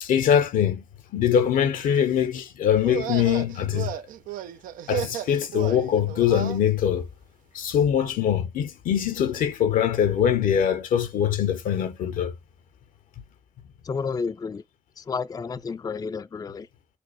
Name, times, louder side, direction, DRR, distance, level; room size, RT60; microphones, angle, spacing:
voice 1, 0.0-0.8 1.1-3.9 4.9-7.0 7.5-12.3, left 9 dB, 75° left, 0.7 m, -23 dB
sound 1, 2.8-6.6, right 10 dB, 75° right, 0.4 m, -33 dB
voice 2, 13.8-14.6 15.0-16.7, left 5 dB, 25° left, 0.4 m, -31 dB
4.3 x 2.0 x 2.9 m
hypercardioid pair, 40°, 14 cm